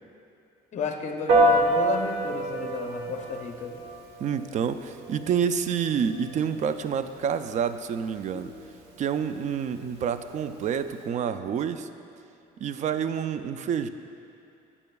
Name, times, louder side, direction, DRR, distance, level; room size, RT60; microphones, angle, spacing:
voice 1, 0.7-3.8 8.3-8.4, left 6 dB, 45° left, 4 dB, 0.7 m, -32 dB
Piano, 1.3-11.0, right 1 dB, 80° right, 1.1 m, -29 dB
voice 2, 4.2-8.5 9.0-11.9 12.6-13.9, right 7 dB, 45° right, 11 dB, 0.4 m, -28 dB
12.0 x 8.5 x 2.3 m, 2.6 s
cardioid pair, 110°, 17 cm